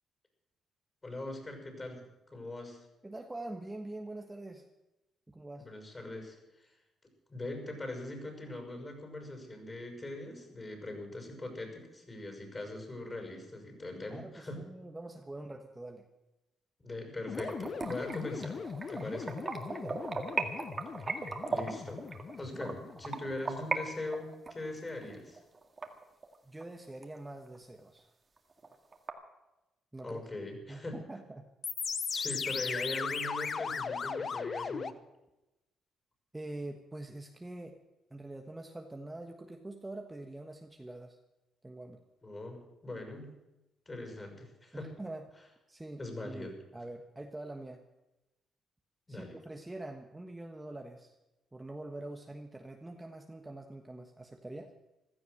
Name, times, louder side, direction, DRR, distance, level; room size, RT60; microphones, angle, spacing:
voice 1, 1.0-2.8 5.6-6.4 7.3-14.6 16.8-18.6 18.9-19.4 21.5-25.4 30.0-31.0 32.1-34.9 42.2-43.3 43.9-44.9 46.0-46.5 49.1-49.4, left 2 dB, 25° left, 4 dB, 6.1 m, -41 dB
voice 2, 3.0-4.7 5.3-5.7 14.1-16.0 19.7-20.0 26.4-28.1 29.9-30.2 30.7-31.4 36.3-37.8 38.1-41.2 41.6-42.0 44.7-45.3 45.7-47.8 49.1-51.1 51.5-54.7, right 2 dB, 15° right, 3 dB, 1.3 m, -44 dB
sound 1, 17.3-23.4 31.6-34.9, left 5 dB, 45° left, 0.8 m, -38 dB
sound 2, 17.3-23.8 24.1-26.6 27.0-27.1 27.5-27.6 28.0-28.1 28.4-29.1, right 3 dB, 30° right, 2.0 m, -37 dB
15.5 x 13.0 x 6.5 m, 0.97 s
cardioid pair, 90°, 0 cm